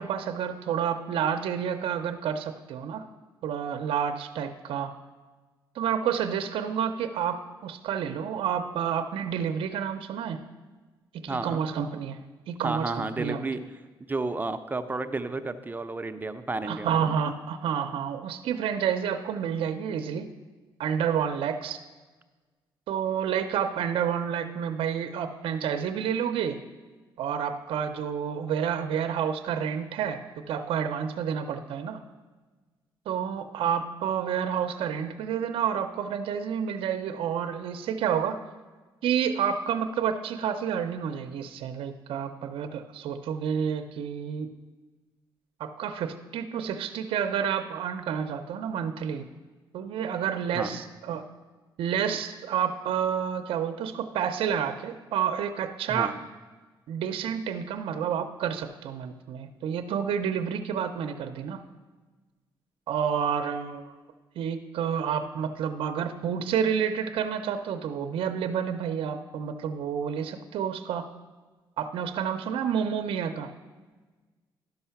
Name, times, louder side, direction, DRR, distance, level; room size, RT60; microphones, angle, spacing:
voice 1, 0.0-3.1 3.4-4.9 5.8-10.4 11.1-12.2 12.5-13.4 16.6-20.3 20.8-21.8 22.9-26.6 27.2-30.2 30.5-32.0 33.1-38.4 39.0-44.5 45.6-49.3 49.7-51.2 51.8-56.1 56.9-61.6 62.9-63.9 64.4-71.1 71.8-73.5, right 8 dB, 85° right, 7 dB, 0.5 m, -29 dB
voice 2, 11.3-11.6 12.6-13.6 14.0-17.2 50.5-50.8 55.9-56.2, right 3 dB, 20° right, 9 dB, 0.5 m, -32 dB
11.5 x 5.5 x 5.7 m, 1.3 s
cardioid pair, 95°, 9 cm